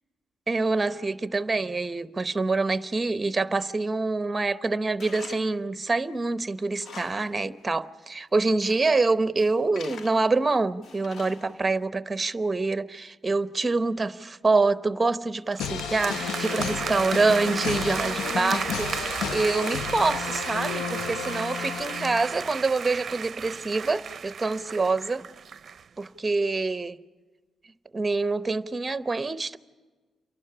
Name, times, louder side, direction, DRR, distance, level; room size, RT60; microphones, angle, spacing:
voice 1, 0.5-25.2 26.0-27.0 27.9-29.6, right 3 dB, 20° right, 13 dB, 0.8 m, -26 dB
Tools, 5.0-5.6 6.0-6.1 6.6-7.4 7.7-7.8 8.4-8.9 9.4-10.4 10.8-11.7, left 5 dB, 60° left, 1.0 m, -45 dB
sound 1, 15.5-25.8, right 7 dB, 45° right, 0.6 m, -34 dB
sound 2, 15.6-22.5, left 8 dB, 90° left, 0.6 m, -33 dB
28.5 x 11.5 x 9.8 m, 1.4 s
cardioid pair, 115°, 0 cm